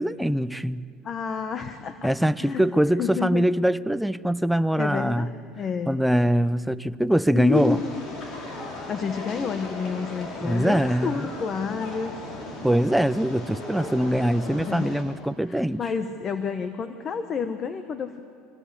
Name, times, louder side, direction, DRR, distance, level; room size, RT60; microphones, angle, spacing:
voice 1, 0.0-0.9 2.0-5.3 5.9-7.8 10.4-11.3 12.6-15.8, equal, 5° right, 15 dB, 0.6 m, -23 dB
voice 2, 1.0-2.7 3.0-3.4 4.8-6.0 7.3-8.0 8.9-12.2 14.6-14.9 15.5-18.2, left 6 dB, 35° left, 9 dB, 1.2 m, -30 dB
sound 1, 7.5-15.0, left 2 dB, 55° left, 5.9 m, -37 dB
24.5 x 17.0 x 8.3 m, 2.4 s
supercardioid pair, 100°, 0 cm